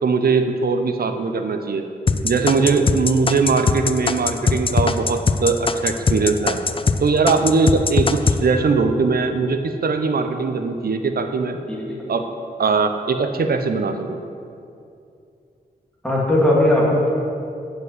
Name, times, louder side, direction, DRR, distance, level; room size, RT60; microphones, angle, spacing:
voice 1, 0.0-1.8 2.2-6.6 7.0-11.6 12.1-12.2 12.6-14.2, right 4 dB, 65° right, 6 dB, 0.8 m, -20 dB
sound 1, 2.1-7.0 7.3-8.4, left 4 dB, 35° left, 0.4 m, -19 dB
voice 2, 16.0-17.1, left 1 dB, 5° left, -5 dB, 2.1 m, -18 dB
9.4 x 5.3 x 8.0 m, 2.5 s
wide cardioid pair, 105°, 17 cm